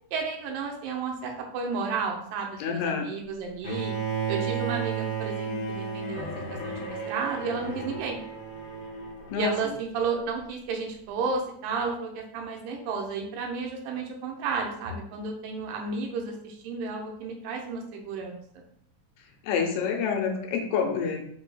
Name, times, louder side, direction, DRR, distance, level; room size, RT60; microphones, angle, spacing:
voice 1, 0.1-3.9 4.3-8.2 9.4-18.6, right 4 dB, 90° right, 2 dB, 2.4 m, -32 dB
voice 2, 2.6-3.1 9.3-9.5 19.4-21.3, left 6 dB, 90° left, 3 dB, 2.3 m, -27 dB
Bowed string instrument, 3.6-9.7, right 5 dB, 65° left, 1.5 m, -33 dB
5.3 x 3.3 x 2.3 m, 0.67 s
omnidirectional pair, 3.9 m